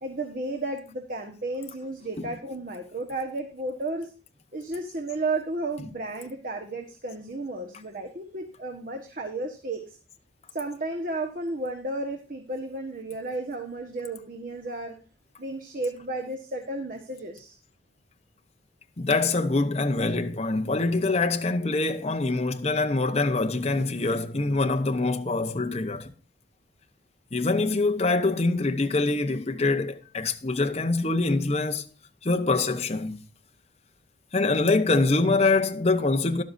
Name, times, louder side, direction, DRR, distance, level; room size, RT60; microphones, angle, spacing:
voice 1, 0.0-4.1 4.5-10.0 10.5-14.9 15.4-17.6, right 2 dB, 45° right, 1.3 m, -33 dB
voice 2, 19.0-26.1 27.3-31.9 32.2-33.2 34.3-36.4, left 3 dB, 30° left, 0.8 m, -24 dB
12.5 x 11.5 x 2.6 m
head